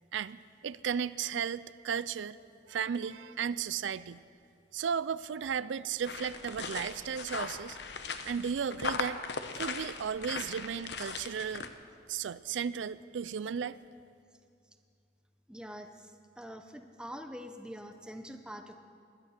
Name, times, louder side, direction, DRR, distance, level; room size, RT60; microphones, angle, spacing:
voice 1, 0.6-2.4 2.7-4.2 4.7-7.8 8.2-9.2 9.6-11.6 12.1-13.8, right 7 dB, 85° right, 16 dB, 0.4 m, -34 dB
sound 1, 6.0-11.7, left 4 dB, 65° left, 0.9 m, -39 dB
voice 2, 15.5-18.7, equal, 5° right, 6 dB, 0.8 m, -45 dB
19.5 x 11.5 x 6.6 m, 2.3 s
head